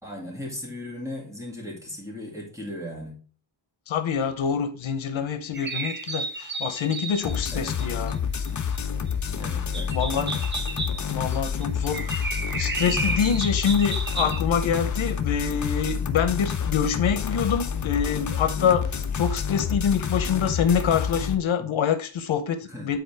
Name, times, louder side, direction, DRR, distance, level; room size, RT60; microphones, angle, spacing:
voice 1, 0.0-3.2 7.5-7.8 9.4-10.5 12.9-13.1 21.6-21.7 22.6-22.9, left 1 dB, 5° right, -2 dB, 1.9 m, -37 dB
voice 2, 3.9-8.1 9.9-10.3 11.1-12.3 12.6-23.0, left 7 dB, 85° left, 9 dB, 0.8 m, -26 dB
sound 1, 5.5-8.5 8.8-8.9 9.1-9.3 9.7-14.4, right 3 dB, 25° right, 0.7 m, -32 dB
sound 2, 7.2-21.4, left 7 dB, 40° left, 0.5 m, -28 dB
8.0 x 4.2 x 3.3 m, 0.39 s
wide cardioid pair, 145°, 47 cm